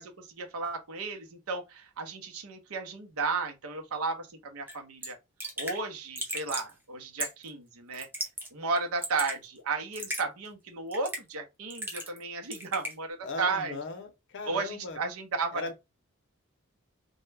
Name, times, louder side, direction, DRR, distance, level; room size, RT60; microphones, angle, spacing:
voice 1, 0.0-5.2 5.6-8.1 8.5-13.8 14.4-15.8, right 4 dB, 80° right, 0.7 m, -34 dB
Raindrop / Drip, 4.7-4.8 5.0-5.1 5.4-5.8 6.2-6.7 7.2-7.5 7.9-8.5 8.8-9.4 9.9-10.2 10.9-11.3 11.7-12.2 12.5-12.9, right 1 dB, 10° right, 0.5 m, -36 dB
voice 2, 13.2-15.0 15.5-15.8, left 2 dB, 55° left, 0.6 m, -38 dB
2.2 x 2.1 x 3.2 m
head